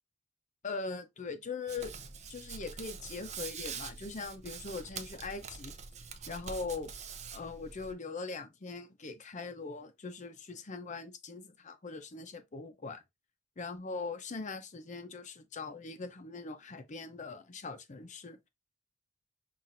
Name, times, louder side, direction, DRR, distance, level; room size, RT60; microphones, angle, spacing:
voice 1, 0.6-1.9 2.3-5.7 6.3-6.9 7.3-13.0 13.6-18.4, left 4 dB, 35° left, 0.6 m, -41 dB
Hands, 1.7-7.9, right 6 dB, 35° right, 0.5 m, -45 dB
5.7 x 2.5 x 2.5 m
head